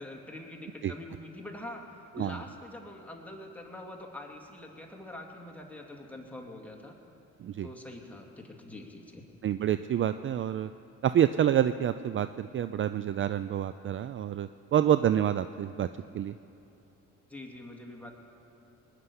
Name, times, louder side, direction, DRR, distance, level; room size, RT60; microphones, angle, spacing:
voice 1, 0.0-6.9 7.6-9.3 17.3-18.1, left 1 dB, 5° left, 0 dB, 2.2 m, -44 dB
voice 2, 9.4-10.7 11.0-15.9 16.1-16.4, right 10 dB, 45° right, 12 dB, 0.4 m, -27 dB
20.0 x 6.8 x 9.7 m, 2.8 s
cardioid pair, 90°, 30 cm